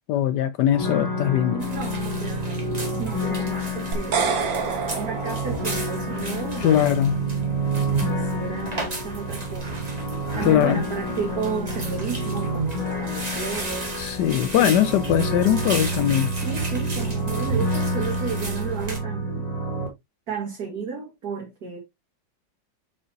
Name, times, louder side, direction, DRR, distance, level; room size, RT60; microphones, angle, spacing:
voice 1, 0.1-1.6 6.6-7.2 10.4-10.8 14.0-16.3, left 11 dB, 75° left, 1.1 m, -21 dB
sound 1, 0.7-19.9, right 1 dB, 10° left, 2.5 m, -28 dB
voice 2, 1.5-7.0 8.1-9.8 10.3-13.9 14.5-15.0 16.3-19.5 20.3-21.8, right 6 dB, 50° right, 2.2 m, -33 dB
sound 2, 1.6-19.0, right 1 dB, 20° right, 1.5 m, -36 dB
sound 3, 3.9-6.2, right 5 dB, 75° right, 2.0 m, -27 dB
6.5 x 5.6 x 2.8 m
omnidirectional pair, 2.1 m